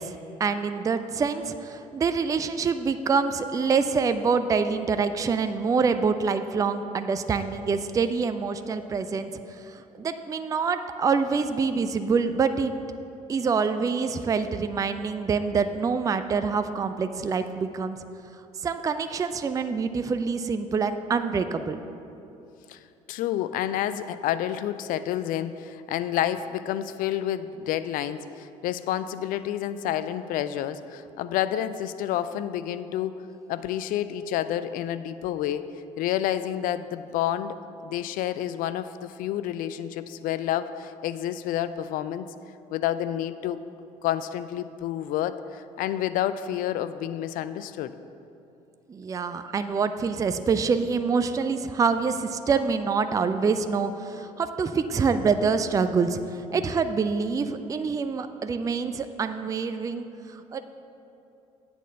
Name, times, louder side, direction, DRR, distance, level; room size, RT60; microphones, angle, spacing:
voice 1, 0.0-12.7 13.3-18.0 18.6-21.8 48.9-60.1 60.3-60.6, right 5 dB, 20° right, 10 dB, 0.4 m, -26 dB
voice 2, 23.1-33.2 33.5-35.7 36.0-37.6 37.8-42.2 42.7-43.6 44.0-47.9, left 11 dB, 50° left, 13 dB, 0.4 m, -29 dB
8.0 x 4.4 x 6.7 m, 2.8 s
figure-of-eight pair, 50°, 18 cm